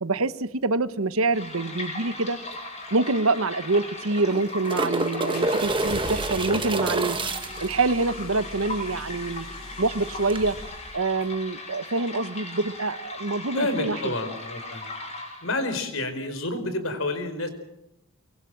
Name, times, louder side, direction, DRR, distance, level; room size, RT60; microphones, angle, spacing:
voice 1, 0.0-2.4 2.9-7.2 7.6-9.4 9.8-10.6 10.9-14.1, right 3 dB, 70° right, 14 dB, 1.1 m, -26 dB
sound 1, 1.3-15.7, left 2 dB, 30° left, 6.3 m, -38 dB
sound 2, 2.5-2.6 2.9-3.0 4.0-7.7 10.3-10.4, right 2 dB, 25° right, 1.3 m, -28 dB
sound 3, 5.3-11.3, left 1 dB, 45° left, 6.0 m, -41 dB
voice 2, 13.5-14.9 15.4-17.5, left 2 dB, 65° left, 9 dB, 4.7 m, -29 dB
24.5 x 23.5 x 7.6 m, 0.86 s
head